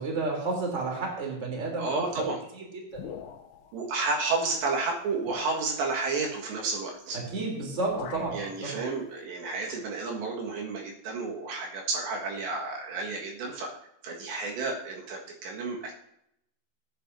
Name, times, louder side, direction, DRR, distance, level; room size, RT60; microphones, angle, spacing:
voice 1, 0.0-2.3 2.5-2.6 3.0-3.2 7.1-8.8, right 3 dB, 20° right, 0 dB, 2.9 m, -31 dB
voice 2, 1.8-2.4 3.7-7.2 8.3-13.7 14.0-15.9, right 3 dB, 70° right, 0 dB, 3.7 m, -31 dB
sound 1, 2.9-3.7 4.6-4.7 5.3-5.7 7.1-7.4 7.6-8.4, left 8 dB, 80° left, 3.4 m, -43 dB
18.5 x 9.4 x 2.7 m, 0.77 s
omnidirectional pair, 5.4 m